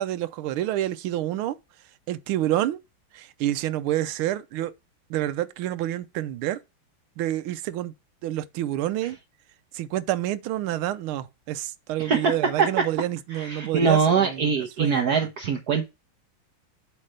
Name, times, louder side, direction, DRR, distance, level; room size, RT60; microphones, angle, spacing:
voice 1, 0.0-1.6 2.1-2.8 3.1-4.7 5.1-6.6 7.2-7.9 8.2-9.2 9.7-15.3, right 13 dB, 85° right, 1.5 m, -28 dB
voice 2, 12.0-12.3 12.6-12.7 13.3-15.9, right 6 dB, 60° right, 1.2 m, -23 dB
7.6 x 3.3 x 6.4 m
omnidirectional pair, 2.3 m